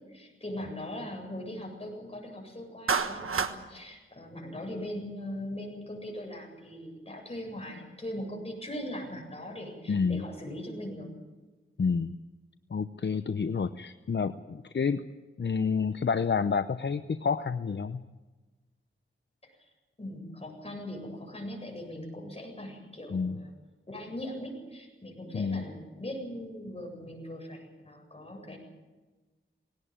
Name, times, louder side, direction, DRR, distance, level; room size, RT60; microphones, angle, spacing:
voice 1, 0.1-11.1 19.4-19.5 20.0-23.5 23.9-28.6, left 1 dB, 30° left, 1 dB, 7.8 m, -40 dB
Clapping, 2.9-3.6, right 5 dB, 80° right, 1.4 m, -28 dB
voice 2, 9.9-10.2 11.8-12.2 12.7-15.0 15.4-18.0 23.1-23.4 25.3-25.6, left 5 dB, 55° left, 11 dB, 0.7 m, -29 dB
20.0 x 18.0 x 8.9 m, 1.2 s
wide cardioid pair, 75°, 21 cm